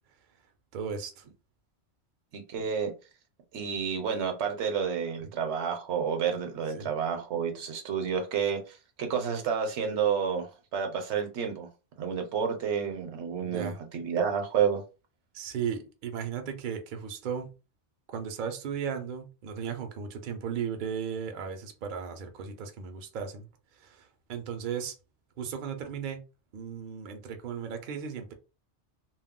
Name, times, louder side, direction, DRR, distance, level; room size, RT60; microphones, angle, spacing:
voice 1, 0.7-1.2 6.7-6.9 13.4-13.8 15.3-17.5 18.1-23.5 23.8-24.9 25.4-26.2 26.5-28.3, right 7 dB, 55° right, 0.6 m, -36 dB
voice 2, 2.3-2.9 3.5-11.7 12.0-14.8, right 7 dB, 70° right, 0.9 m, -30 dB
2.3 x 2.0 x 3.5 m
omnidirectional pair, 1.3 m